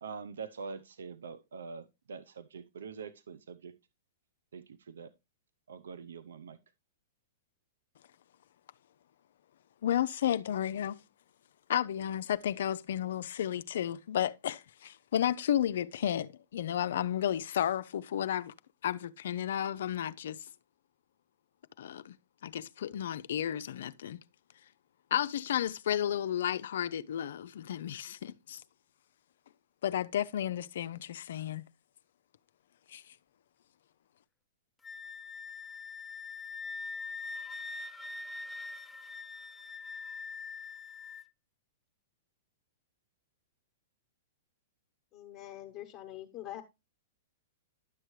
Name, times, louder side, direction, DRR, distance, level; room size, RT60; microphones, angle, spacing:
voice 1, 0.0-3.8 4.5-5.1 5.7-6.6, right 5 dB, 80° right, 0.6 m, -44 dB
voice 2, 9.8-11.0 11.7-18.5 18.8-20.4 21.8-22.2 22.4-24.2 25.1-28.6 29.8-31.6 32.9-33.0, left 10 dB, 70° left, 0.4 m, -32 dB
Wind instrument woodwind instrument, 34.8-41.2, left 4 dB, 10° left, 0.4 m, -43 dB
voice 3, 45.1-46.6, left 13 dB, 30° left, 1.1 m, -44 dB
11.0 x 6.5 x 3.1 m
hypercardioid pair, 125°, 0 cm